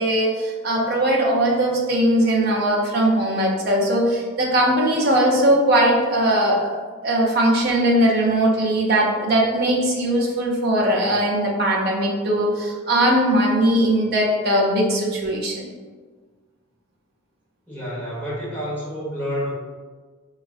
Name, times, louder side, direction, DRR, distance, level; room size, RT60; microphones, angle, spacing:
voice 1, 0.0-15.7, right 1 dB, 50° right, -3 dB, 0.6 m, -20 dB
voice 2, 17.7-19.5, equal, 10° left, -9 dB, 1.1 m, -29 dB
4.4 x 2.3 x 2.4 m, 1.4 s
head